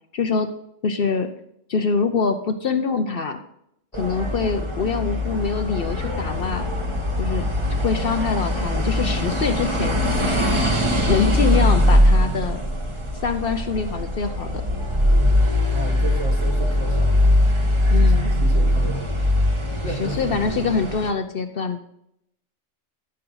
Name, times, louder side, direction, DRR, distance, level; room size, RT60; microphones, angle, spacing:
voice 1, 0.1-0.5 0.8-1.3 1.7-3.4 3.9-6.6 7.2-7.5 7.8-10.0 11.1-12.6 13.2-14.6 17.9-18.3 20.0-21.8, left 5 dB, 55° left, 8 dB, 0.8 m, -24 dB
sound 1, 3.9-21.1, left 1 dB, 25° right, 1.2 m, -21 dB
voice 2, 15.3-17.3 17.9-18.1 18.4-19.1 19.8-20.4, right 2 dB, 65° right, 2 dB, 2.1 m, -33 dB
13.5 x 5.6 x 3.9 m, 0.76 s
omnidirectional pair, 1.3 m